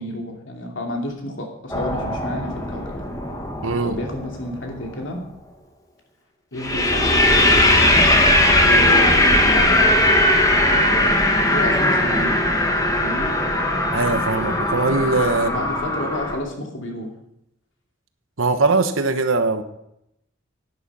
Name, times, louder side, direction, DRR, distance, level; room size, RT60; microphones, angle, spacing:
voice 1, 0.0-3.0 3.8-5.2 6.5-8.1 8.6-9.7 10.7-12.4 13.0-13.3 15.3-17.1, left 1 dB, 70° left, 2 dB, 2.6 m, -31 dB
sound 1, 1.7-4.6 6.6-16.4, left 1 dB, 15° left, 1.4 m, -19 dB
voice 2, 3.6-4.0 13.9-15.5 18.4-19.6, right 3 dB, 85° right, 9 dB, 1.2 m, -21 dB
11.0 x 10.0 x 5.5 m, 0.79 s
head